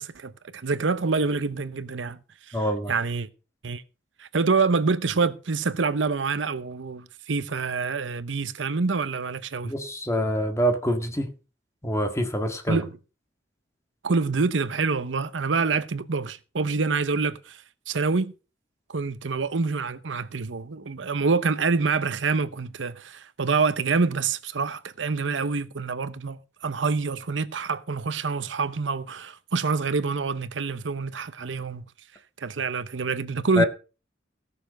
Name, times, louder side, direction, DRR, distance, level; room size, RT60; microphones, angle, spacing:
voice 1, 0.0-2.2 2.5-2.6 2.9-3.3 3.6-3.8 4.2-9.7 12.7-12.9 14.0-18.3 18.9-31.9 32.4-33.6, right 4 dB, 85° right, 0.8 m, -26 dB
voice 2, 2.5-2.9 9.6-11.3 11.8-12.8 33.6-33.7, equal, 15° left, 1.9 m, -25 dB
17.0 x 6.9 x 5.1 m
head